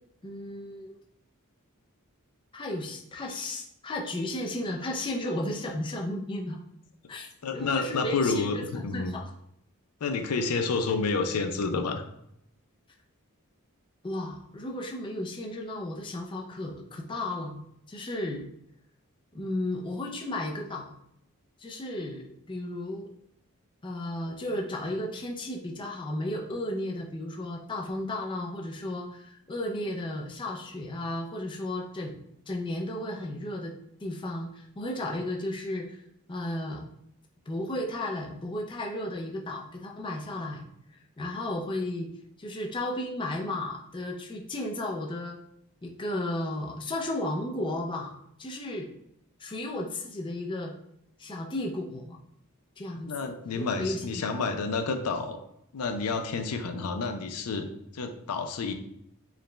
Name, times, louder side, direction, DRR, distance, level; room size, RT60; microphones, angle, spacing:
voice 1, 0.2-1.0 2.5-6.6 7.1-7.3 7.5-9.3 14.0-18.5 19.3-20.9 21.6-23.1 23.8-33.7 34.0-36.0 36.3-36.9 37.5-40.7 41.2-42.1 42.4-45.4 45.8-48.1 48.4-48.9 49.4-50.7 51.2-52.2 52.8-54.2, left 1 dB, 20° left, 0 dB, 0.4 m, -34 dB
voice 2, 7.4-9.1 10.0-12.1 53.1-55.4 55.7-57.6 57.9-58.7, left 4 dB, 80° left, 6 dB, 0.5 m, -29 dB
4.7 x 2.2 x 3.1 m, 0.75 s
head